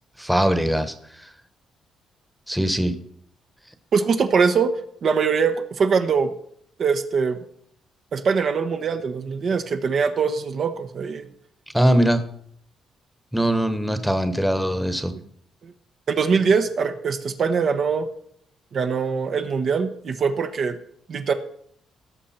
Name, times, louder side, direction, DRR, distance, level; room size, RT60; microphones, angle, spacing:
voice 1, 0.2-1.3 2.5-3.0 11.7-12.3 13.3-15.1, right 1 dB, ahead, 9 dB, 1.1 m, -21 dB
voice 2, 3.9-4.8 5.0-6.3 6.8-7.4 8.1-11.2 15.6-15.7 16.1-18.1 18.7-20.8 21.1-21.3, right 5 dB, 55° right, 7 dB, 0.9 m, -22 dB
17.5 x 6.6 x 4.3 m, 0.67 s
cardioid pair, 90°, 0 cm